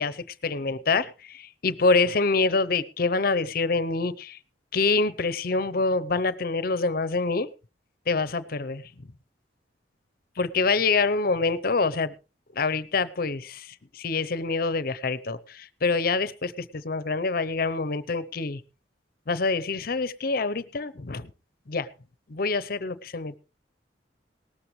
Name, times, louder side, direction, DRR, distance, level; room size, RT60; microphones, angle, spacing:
voice 1, 0.0-4.4 4.7-7.5 8.1-9.1 10.4-12.1 12.5-18.6 19.3-21.3 21.7-21.9 22.3-23.4, left 3 dB, 50° left, 0.7 m, -26 dB
18.5 x 13.0 x 3.1 m
head